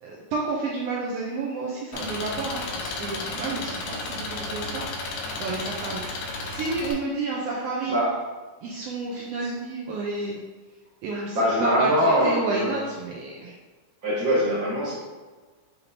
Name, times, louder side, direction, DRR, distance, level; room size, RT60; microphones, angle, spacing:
voice 1, 0.0-4.9 5.4-6.0 6.5-8.0 8.6-10.4 11.0-13.5, right 3 dB, 85° right, -3 dB, 1.3 m, -30 dB
Engine, 1.9-6.9, left 3 dB, 80° left, 2.1 m, -33 dB
voice 2, 11.1-12.8 14.0-14.9, equal, 55° right, -8 dB, 1.0 m, -23 dB
6.8 x 2.8 x 2.7 m, 1.3 s
omnidirectional pair, 3.4 m